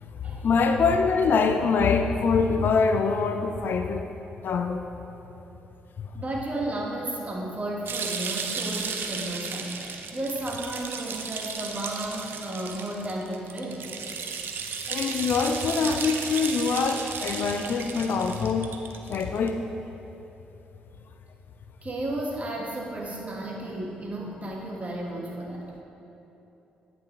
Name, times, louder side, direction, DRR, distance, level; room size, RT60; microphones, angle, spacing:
voice 1, 0.0-4.1 4.4-4.8 6.0-6.1 14.9-18.7 19.1-19.6, left 5 dB, 50° left, 7 dB, 0.4 m, -24 dB
voice 2, 6.1-9.7 10.1-13.8 21.8-25.6, right 1 dB, 30° right, -2 dB, 1.5 m, -33 dB
sound 1, 7.9-19.5, right 5 dB, 55° right, 0.6 m, -34 dB
9.3 x 5.9 x 3.2 m, 3.0 s
hypercardioid pair, 40°, 4 cm